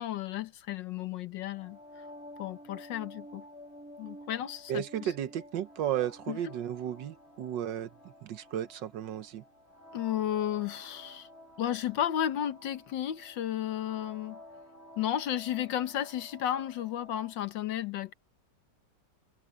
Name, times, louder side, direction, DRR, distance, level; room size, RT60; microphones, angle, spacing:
voice 1, 0.0-1.8 2.4-3.4 4.0-5.1 6.3-6.4 9.9-11.3 11.6-14.4 15.0-18.1, left 11 dB, 75° left, 1.6 m, -33 dB
sound 1, 1.5-17.4, left 1 dB, 35° left, 7.4 m, -51 dB
voice 2, 4.7-9.4, right 11 dB, 75° right, 1.6 m, -34 dB
omnidirectional pair, 2.0 m